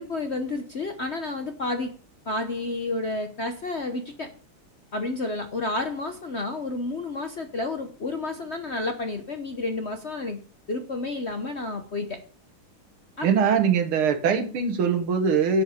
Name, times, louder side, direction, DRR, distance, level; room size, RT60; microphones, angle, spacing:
voice 1, 0.0-1.9 2.3-4.3 4.9-10.4 10.7-12.2 13.2-13.3, left 2 dB, 50° left, 6 dB, 0.8 m, -30 dB
voice 2, 13.2-15.6, right 6 dB, 85° right, 8 dB, 2.2 m, -22 dB
11.0 x 7.9 x 5.0 m, 0.42 s
omnidirectional pair, 2.3 m